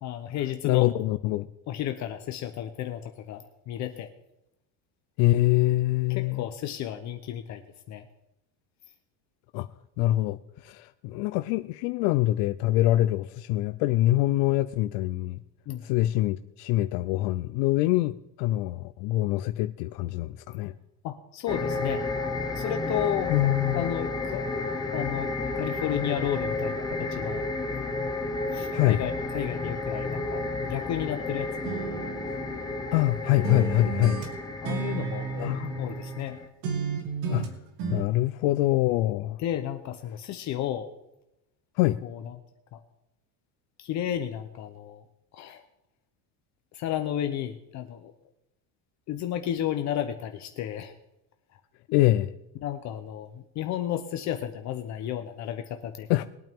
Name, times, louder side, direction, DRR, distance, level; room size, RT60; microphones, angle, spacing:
voice 1, 0.0-0.9 1.7-4.1 6.1-7.6 7.9-8.0 15.7-15.8 21.0-22.0 22.5-23.4 23.7-24.4 24.9-27.4 28.5-31.5 34.6-36.4 39.4-40.9 42.0-42.4 42.7-42.8 43.8-45.0 45.3-45.6 46.7-48.1 49.1-50.9 52.6-56.2, left 11 dB, 40° left, 7 dB, 0.7 m, -32 dB
voice 2, 0.6-1.5 5.2-6.4 9.5-9.7 10.0-15.4 15.8-20.7 23.3-23.9 28.7-29.0 32.9-34.2 35.4-35.9 37.3-37.5 37.9-39.4 41.8-42.0 51.9-52.3 56.1-56.2, left 16 dB, 75° left, 11 dB, 0.6 m, -24 dB
sound 1, 21.5-36.5, left 3 dB, 10° left, 0.8 m, -32 dB
sound 2, 31.6-33.1 33.4-36.3 36.6-38.0, right 6 dB, 75° right, 2.3 m, -33 dB
21.5 x 9.0 x 3.5 m, 0.90 s
cardioid pair, 170°, 43 cm